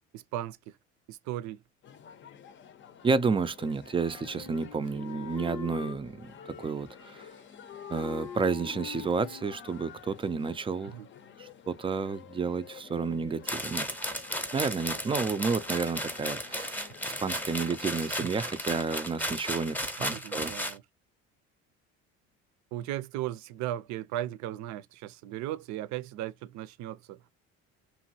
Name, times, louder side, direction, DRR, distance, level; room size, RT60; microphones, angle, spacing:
voice 1, 0.1-0.7 1.1-1.6 10.8-11.1 18.2-18.3 20.0-20.8 22.7-27.2, right 13 dB, 70° right, 0.5 m, -37 dB
sound 1, 1.8-18.1, left 8 dB, 40° left, 0.6 m, -51 dB
voice 2, 3.0-7.3 7.9-10.9 11.4-13.9 14.5-20.5, right 4 dB, 20° right, 0.3 m, -31 dB
Wind instrument woodwind instrument, 3.9-6.0 6.4-7.4 7.7-9.9, left 7 dB, 85° left, 0.8 m, -44 dB
sound 2, 13.5-20.8, equal, 5° left, 0.7 m, -35 dB
2.9 x 2.6 x 2.7 m
supercardioid pair, 95°, 30 cm